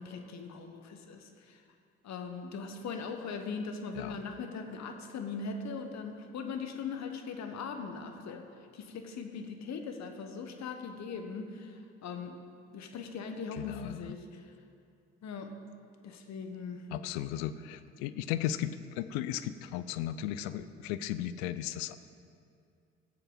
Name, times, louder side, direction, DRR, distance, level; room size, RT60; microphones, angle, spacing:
voice 1, 0.0-1.6 2.0-8.5 8.7-12.4 12.7-14.4 15.2-15.5 16.0-16.8, left 5 dB, 55° left, 5 dB, 1.1 m, -40 dB
voice 2, 13.5-14.1 16.9-18.7 19.0-22.0, left 12 dB, 80° left, 13 dB, 0.5 m, -35 dB
15.0 x 7.9 x 3.8 m, 2.4 s
hypercardioid pair, 45°, 32 cm